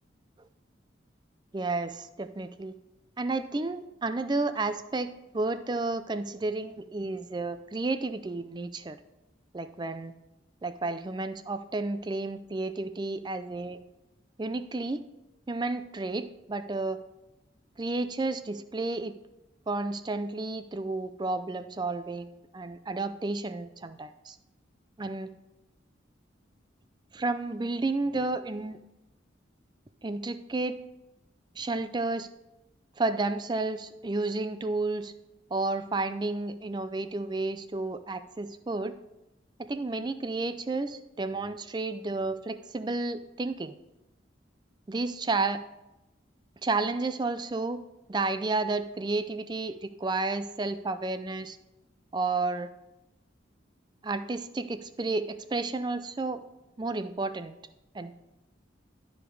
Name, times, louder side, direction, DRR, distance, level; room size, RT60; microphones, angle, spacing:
voice 1, 1.5-2.7 3.2-9.0 9.5-10.1 10.6-13.8 14.4-15.0 15.5-17.0 17.8-19.1 19.7-24.4 25.0-25.3 27.1-28.8 30.0-30.8 31.6-32.3 33.0-35.1 35.5-39.0 39.6-43.8 44.9-45.6 46.6-47.8 48.1-51.6 52.1-52.7 54.0-56.4 56.8-57.5 57.9-58.1, right 3 dB, 25° right, 11 dB, 0.4 m, -31 dB
12.0 x 5.0 x 4.7 m, 0.96 s
head